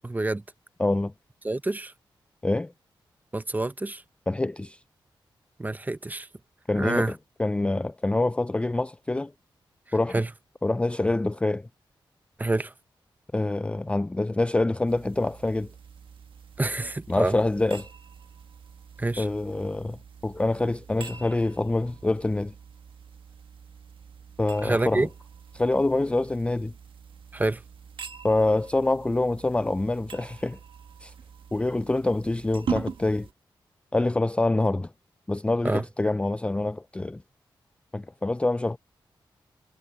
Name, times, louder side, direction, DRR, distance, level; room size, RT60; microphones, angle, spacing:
voice 1, 0.0-0.4 1.4-1.9 3.3-4.0 5.6-6.3 6.7-7.1 9.9-10.3 12.4-12.7 16.6-17.4 19.0-19.3 24.6-25.1 27.3-27.6 35.6-35.8, right 2 dB, 20° right, 1.0 m, -27 dB
voice 2, 0.8-1.1 2.4-2.7 4.3-4.8 6.7-7.1 7.4-9.3 9.9-10.1 10.6-11.7 13.3-15.7 17.1-17.9 19.2-22.5 24.4-25.1 25.5-26.7 28.2-30.6 31.0-31.1 31.5-33.3 33.9-34.9 35.3-37.2 37.9-38.8, left 2 dB, 15° left, 0.4 m, -26 dB
sound 1, 14.8-33.3, right 6 dB, 75° right, 1.5 m, -42 dB
cardioid pair, 70°, 9 cm